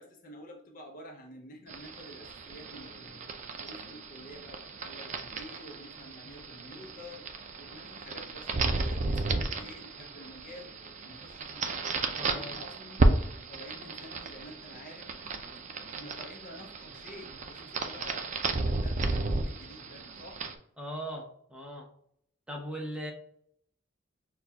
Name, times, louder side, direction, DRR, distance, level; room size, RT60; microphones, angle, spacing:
voice 1, 0.0-3.3 3.6-7.3 7.6-10.8 11.0-11.8 12.2-13.1 13.5-15.1 15.9-20.4, left 1 dB, 45° left, 3 dB, 0.7 m, -49 dB
sound 1, 1.7-20.5, right 3 dB, 40° right, 0.4 m, -33 dB
voice 2, 12.2-12.6 20.8-21.9 22.5-23.1, equal, 5° right, -1 dB, 0.8 m, -39 dB
6.3 x 2.3 x 2.8 m, 0.67 s
head